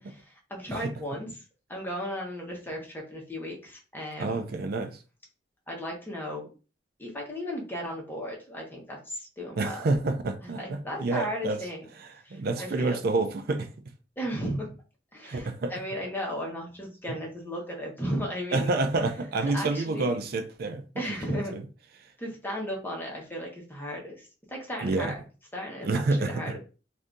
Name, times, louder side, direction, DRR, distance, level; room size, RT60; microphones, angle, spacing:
voice 1, 0.2-1.4 1.7-4.4 5.7-6.5 7.0-9.8 10.4-11.8 12.2-13.0 14.2-14.7 15.1-18.7 19.5-20.1 21.0-21.5 22.2-25.2 25.5-26.6, equal, 10° left, 1.1 m, -35 dB
voice 2, 4.2-5.0 9.6-11.6 12.0-13.7 15.2-15.7 18.5-20.8 21.3-21.6 24.8-25.1 25.8-26.4, right 3 dB, 55° right, 0.4 m, -28 dB
2.6 x 2.5 x 3.6 m
head